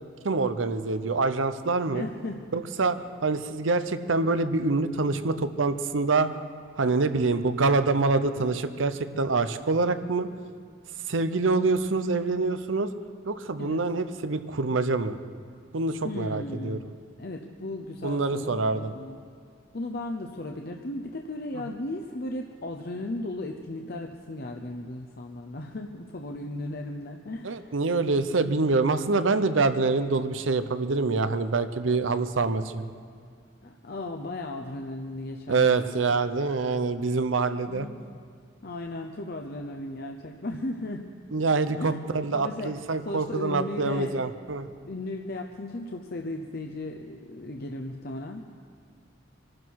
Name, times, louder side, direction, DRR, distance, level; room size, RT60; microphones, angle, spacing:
voice 1, 0.2-2.1 2.5-3.0 3.2-6.3 6.8-10.3 11.1-12.9 13.3-15.2 15.7-16.8 18.0-18.9 27.4-32.8 35.5-37.9 41.3-44.7, right 3 dB, 90° right, 11 dB, 0.8 m, -25 dB
voice 2, 1.9-2.4 13.6-13.8 16.0-16.9 17.2-19.2 19.7-27.7 33.6-35.9 37.7-38.0 38.6-41.1 41.7-42.0 42.3-42.7 43.1-44.1 44.8-48.4, left 2 dB, 55° left, 3 dB, 0.7 m, -36 dB
24.5 x 12.5 x 4.7 m, 2.1 s
head